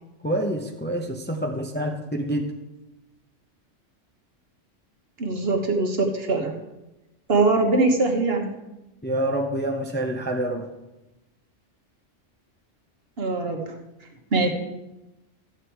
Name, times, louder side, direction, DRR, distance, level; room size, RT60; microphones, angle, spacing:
voice 1, 0.2-2.5 9.0-10.7, right 1 dB, 10° left, 2 dB, 0.7 m, -27 dB
voice 2, 5.2-6.6 7.3-8.5 13.2-13.7 14.3-14.5, right 3 dB, 55° right, 2 dB, 1.5 m, -22 dB
13.0 x 8.2 x 4.6 m, 1.0 s
omnidirectional pair, 1.3 m